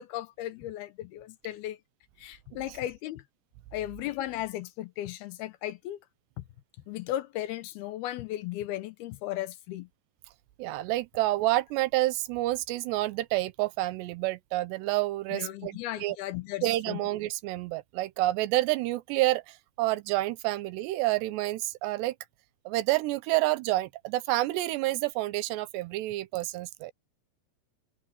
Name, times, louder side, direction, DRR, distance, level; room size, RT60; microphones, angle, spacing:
voice 1, 0.0-1.8 2.2-3.2 3.7-6.0 6.4-6.5 6.9-9.9 15.3-17.0, left 14 dB, 75° left, 2.6 m, -36 dB
voice 2, 10.6-16.2 16.6-22.2 22.7-26.9, right 17 dB, 85° right, 3.0 m, -29 dB
omnidirectional pair, 4.8 m